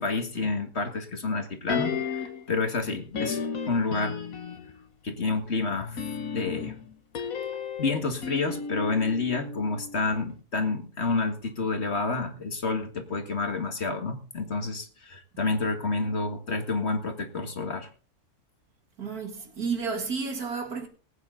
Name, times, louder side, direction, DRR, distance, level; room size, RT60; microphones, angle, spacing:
voice 1, 0.0-4.2 5.0-6.0 6.3-6.8 7.8-17.9, left 3 dB, 45° left, 2.0 m, -29 dB
sound 1, 1.7-2.5 3.1-4.8 5.8-10.0 10.3-10.4, left 6 dB, 70° left, 1.7 m, -34 dB
voice 2, 19.0-20.9, right 5 dB, 85° right, 2.6 m, -31 dB
20.0 x 9.0 x 3.9 m
omnidirectional pair, 1.6 m